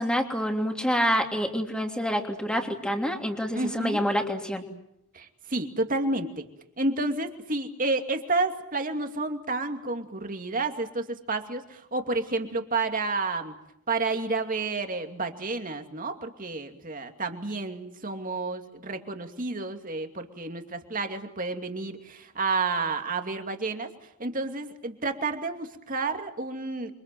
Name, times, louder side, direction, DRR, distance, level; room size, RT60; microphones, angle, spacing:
voice 1, 0.0-4.7, equal, 5° left, 3 dB, 3.1 m, -27 dB
voice 2, 3.5-4.0 5.1-6.5 6.8-13.5 13.9-23.9 24.2-26.9, right 3 dB, 40° right, 6 dB, 2.6 m, -30 dB
29.5 x 24.5 x 7.7 m, 0.79 s
head